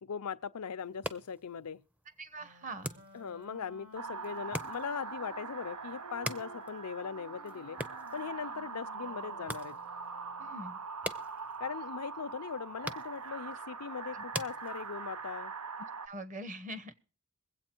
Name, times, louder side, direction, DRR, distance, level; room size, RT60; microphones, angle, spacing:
voice 1, 0.0-1.8 3.1-7.8 8.1-9.8 11.6-15.5, left 6 dB, 85° left, 0.6 m, -40 dB
sound 1, 0.8-15.3, equal, 5° right, 0.6 m, -46 dB
voice 2, 2.2-2.9 10.4-10.8 14.1-14.2 16.1-16.9, right 1 dB, 35° right, 1.0 m, -43 dB
Wind instrument woodwind instrument, 2.4-10.6, equal, 60° right, 2.2 m, -53 dB
sound 2, 3.9-16.1, right 5 dB, 85° right, 0.7 m, -43 dB
22.0 x 8.2 x 4.4 m
head